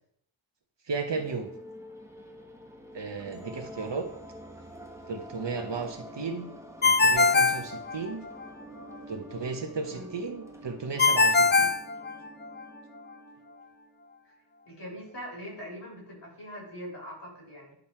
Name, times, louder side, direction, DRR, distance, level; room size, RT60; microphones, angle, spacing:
voice 1, 0.9-1.5 2.9-4.1 5.1-6.5 6.8-8.3 9.1-11.7, right 4 dB, 60° right, 6 dB, 1.0 m, -34 dB
sound 1, 1.1-14.1, equal, 5° right, 1.4 m, -47 dB
Ringtone, 6.8-8.5 11.0-12.6, left 3 dB, 25° left, 0.3 m, -22 dB
voice 2, 14.7-17.7, equal, 60° left, -3 dB, 3.6 m, -42 dB
10.5 x 3.9 x 4.4 m, 0.70 s
wide cardioid pair, 75°, 48 cm